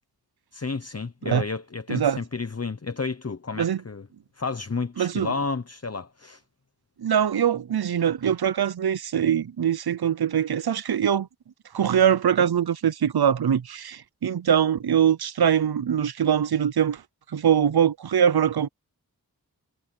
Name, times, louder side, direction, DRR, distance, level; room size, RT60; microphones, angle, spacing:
voice 1, 0.5-4.1 4.3-6.4, left 4 dB, 40° left, 0.9 m, -31 dB
voice 2, 5.0-5.3 7.0-11.3 11.7-17.0 17.3-18.7, right 8 dB, 85° right, 0.6 m, -22 dB
wide cardioid pair, 45°, 37 cm